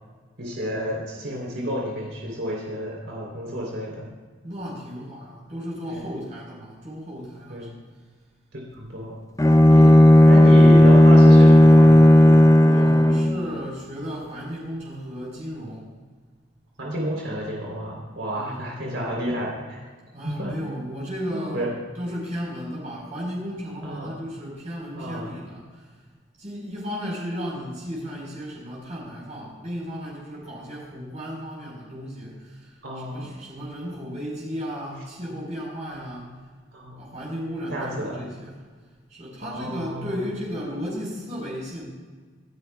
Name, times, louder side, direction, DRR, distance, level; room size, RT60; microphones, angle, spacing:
voice 1, 0.4-4.1 5.9-6.1 7.5-7.7 8.7-9.1 9.7-9.9 10.3-12.4 16.8-19.8 20.2-20.5 21.3-21.7 23.8-24.1 25.0-25.3 32.8-33.3 36.7-37.0 37.7-38.2 39.4-40.2, equal, 75° right, -3 dB, 3.5 m, -30 dB
voice 2, 4.4-7.7 12.5-15.9 18.3-18.8 20.1-21.7 21.9-25.8 26.4-36.3 37.0-38.6 39.1-41.8, equal, 40° right, -4 dB, 4.4 m, -34 dB
Bowed string instrument, 9.4-13.4, left 1 dB, 15° left, 0.7 m, -12 dB
26.5 x 10.5 x 2.4 m, 1.5 s
head